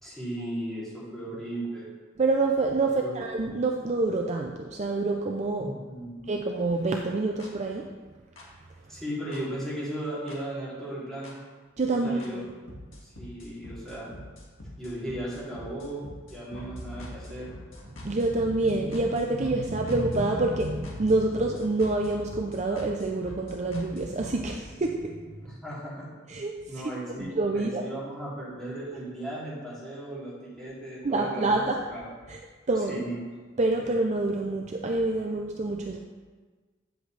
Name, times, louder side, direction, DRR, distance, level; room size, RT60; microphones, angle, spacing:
voice 1, 0.0-1.8 3.0-3.4 5.6-6.3 8.9-11.3 12.0-12.4 13.0-14.1 14.8-17.5 25.4-26.4 26.7-31.6 31.9-32.1 32.9-33.2, right 1 dB, ahead, -9 dB, 2.9 m, -36 dB
voice 2, 2.2-5.7 6.3-7.9 11.8-12.4 18.0-25.2 26.3-26.6 27.2-27.9 31.0-31.8 32.3-32.4 32.7-33.0 33.6-36.0, right 2 dB, 35° right, 2 dB, 0.5 m, -27 dB
sound 1, 7.4-7.5 8.4-8.5 9.3-9.4 10.3-10.4 11.2-11.3 12.2-12.3 12.7-24.5, left 1 dB, 65° left, 1.9 m, -43 dB
9.4 x 7.7 x 3.3 m, 1.4 s
head